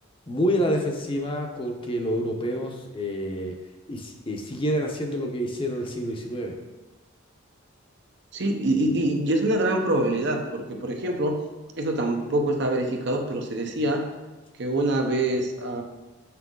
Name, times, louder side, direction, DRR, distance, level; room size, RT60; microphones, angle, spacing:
voice 1, 0.3-3.6 3.9-6.5, equal, 25° left, 2 dB, 0.8 m, -28 dB
voice 2, 8.3-11.4 11.7-14.1 14.6-15.8, right 1 dB, 60° right, 3 dB, 0.8 m, -25 dB
7.0 x 5.8 x 3.8 m, 1.1 s
head